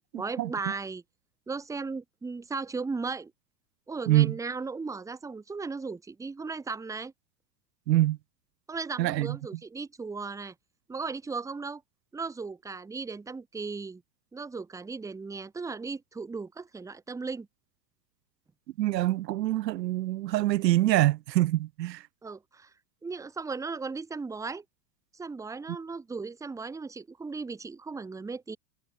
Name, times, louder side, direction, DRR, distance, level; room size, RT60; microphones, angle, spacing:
voice 1, 0.1-1.0 1.5-3.3 3.9-7.1 8.7-10.5 10.9-11.8 12.1-14.0 14.3-17.5 22.2-22.7 23.0-24.6 25.1-28.6, right 4 dB, 5° right, 0.8 m, -36 dB
voice 2, 4.1-4.4 7.9-8.2 9.0-9.4 18.8-22.0, right 15 dB, 90° right, 0.6 m, -25 dB
hypercardioid pair, 105°, 49 cm